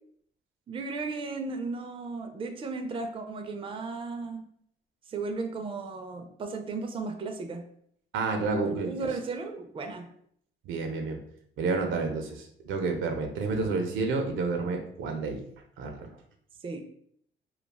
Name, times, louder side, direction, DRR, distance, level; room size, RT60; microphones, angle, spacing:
voice 1, 0.7-4.4 5.1-7.6 8.7-10.1 16.6-16.8, right 3 dB, 25° right, 5 dB, 0.4 m, -35 dB
voice 2, 8.1-9.1 10.7-11.2 11.6-15.4 15.8-16.1, right 3 dB, 80° right, 4 dB, 0.6 m, -30 dB
2.3 x 2.2 x 3.2 m, 0.66 s
cardioid pair, 90°, 20 cm